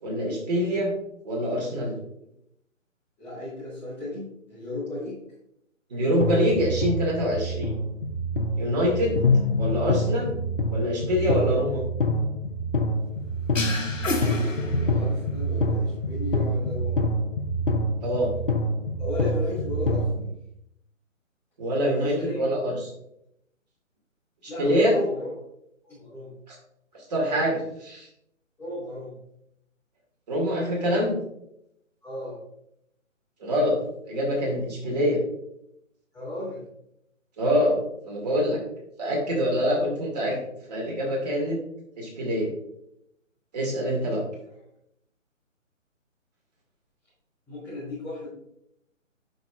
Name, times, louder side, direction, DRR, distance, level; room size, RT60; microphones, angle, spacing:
voice 1, 0.0-0.9 1.2-2.0 5.9-7.7 8.6-9.2 9.6-10.3 10.7-11.8 18.0-18.3 21.6-22.9 24.6-24.9 26.5-26.6 27.1-28.1 30.3-31.2 33.4-33.8 34.1-35.2 37.4-37.8 38.0-38.6 39.0-40.4 40.7-41.6 42.0-42.5 43.5-44.2, equal, 30° right, -2 dB, 2.3 m, -25 dB
voice 2, 3.2-5.2 14.0-17.1 19.0-20.3 21.8-22.4 24.5-25.3 25.8-26.3 28.6-29.2 32.0-32.4 36.1-36.6 44.5-44.6 47.5-48.3, left 1 dB, 5° left, -12 dB, 1.4 m, -34 dB
sound 1, 6.2-20.2, left 1 dB, 45° left, 0.8 m, -26 dB
sound 2, 13.5-15.3, left 3 dB, 75° left, 1.1 m, -30 dB
9.1 x 6.3 x 2.4 m, 0.78 s
figure-of-eight pair, 145°, 39 cm